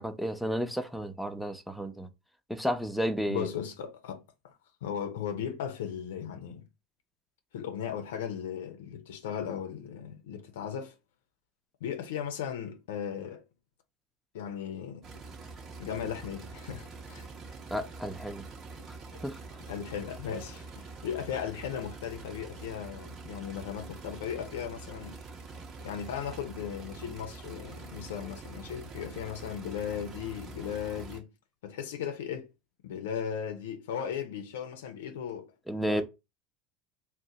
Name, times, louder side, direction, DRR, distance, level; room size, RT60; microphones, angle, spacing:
voice 1, 0.0-2.1 2.5-3.5 17.7-18.4 18.9-19.0 19.2-19.4 35.7-36.0, equal, ahead, 0.5 m, -32 dB
voice 2, 3.3-4.5 4.8-6.7 7.5-11.0 11.8-13.4 14.3-15.1 15.8-17.3 19.7-25.2 25.8-31.3 31.6-32.5 32.8-35.5 35.9-36.0, left 8 dB, 80° left, 0.4 m, -37 dB
sound 1, 15.0-31.2, right 4 dB, 45° right, 0.8 m, -45 dB
2.6 x 2.1 x 3.9 m
hypercardioid pair, 80°, 0 cm